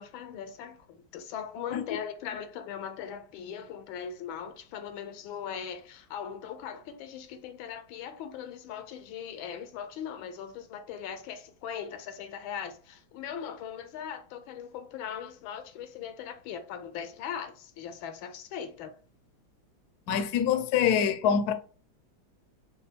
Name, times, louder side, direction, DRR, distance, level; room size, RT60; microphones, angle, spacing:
voice 1, 0.0-19.0, left 8 dB, 85° left, 1.4 m, -39 dB
voice 2, 20.1-21.5, left 8 dB, 70° left, 0.9 m, -25 dB
5.4 x 2.3 x 3.4 m
omnidirectional pair, 2.2 m